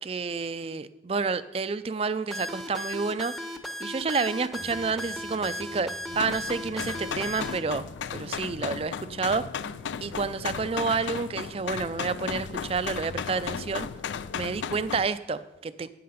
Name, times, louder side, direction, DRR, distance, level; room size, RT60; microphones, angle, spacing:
voice 1, 0.0-3.3 3.8-9.5 10.0-13.9 14.3-15.9, right 4 dB, 30° right, 14 dB, 0.4 m, -29 dB
sound 1, 2.3-7.6, left 1 dB, ahead, 0.7 m, -36 dB
sound 2, 4.6-10.1, equal, 50° left, 0.9 m, -53 dB
sound 3, 6.1-15.1, left 6 dB, 85° left, 0.4 m, -35 dB
9.4 x 7.6 x 5.7 m, 1.0 s
head